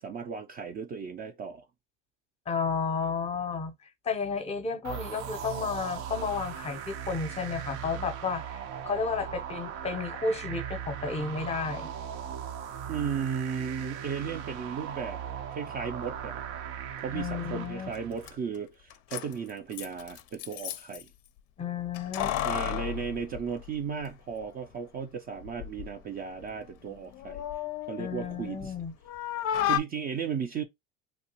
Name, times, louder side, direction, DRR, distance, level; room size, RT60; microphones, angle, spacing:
voice 1, 0.0-1.6 12.9-15.2 15.5-16.5 17.0-21.1 22.4-27.4 27.9-28.7 29.7-30.6, right 6 dB, 25° right, 0.4 m, -35 dB
voice 2, 2.5-3.7 4.0-11.9 17.1-17.9 21.6-22.4 28.0-28.9, left 5 dB, 20° left, 0.7 m, -32 dB
sound 1, 4.8-18.3, right 8 dB, 75° right, 0.7 m, -39 dB
Keys jangling, 17.9-18.0 18.2-18.3 18.9-21.0 21.9-24.1 24.4-24.5 25.4-25.9 26.3-28.8 29.1-29.8, left 11 dB, 45° left, 0.5 m, -33 dB
2.9 x 2.3 x 2.9 m
supercardioid pair, 115°, 35 cm